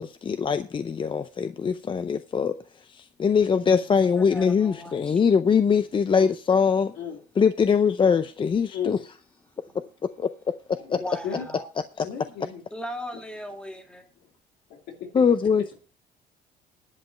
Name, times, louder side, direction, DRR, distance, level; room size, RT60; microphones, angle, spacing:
voice 1, 0.0-2.5 3.2-6.9 7.4-9.0 10.2-10.3 10.9-11.0 15.1-15.8, left 6 dB, 30° left, 0.6 m, -22 dB
voice 2, 4.2-5.2 11.0-11.7 12.7-14.1, equal, 5° left, 2.1 m, -37 dB
voice 3, 8.7-9.0 10.8-11.5 12.0-12.6 14.7-15.1, left 7 dB, 80° left, 2.8 m, -35 dB
11.0 x 5.3 x 7.1 m
cardioid pair, 110°, 17 cm